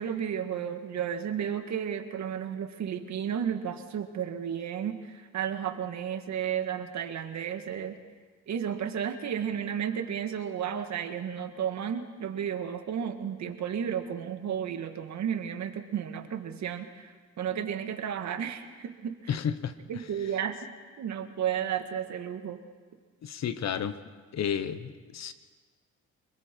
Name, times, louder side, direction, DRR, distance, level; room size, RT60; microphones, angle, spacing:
voice 1, 0.0-8.0 8.5-19.4 19.9-20.7 21.0-22.6, right 8 dB, 65° right, 6 dB, 1.8 m, -33 dB
voice 2, 19.3-19.7 23.2-24.0 24.3-25.3, left 8 dB, 60° left, 12 dB, 1.2 m, -31 dB
27.0 x 21.0 x 4.6 m, 1.5 s
cardioid pair, 90°, 30 cm